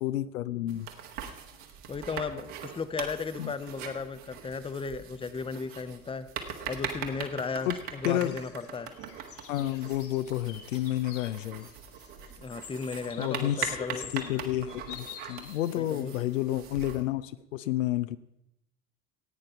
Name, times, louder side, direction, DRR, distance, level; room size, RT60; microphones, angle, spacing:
voice 1, 0.0-0.9 3.4-3.5 7.7-7.8 8.0-8.4 9.5-11.7 13.2-18.2, left 13 dB, 70° left, 13 dB, 0.6 m, -30 dB
sound 1, 0.7-17.0, right 7 dB, 55° right, 1.6 m, -41 dB
voice 2, 1.9-6.3 6.7-8.9 12.3-14.1 15.8-16.1, left 5 dB, 15° left, 12 dB, 0.8 m, -35 dB
sound 2, 7.4-16.2, left 7 dB, 35° left, 1.6 m, -50 dB
16.0 x 8.9 x 5.5 m, 0.83 s
figure-of-eight pair, 60°, 41 cm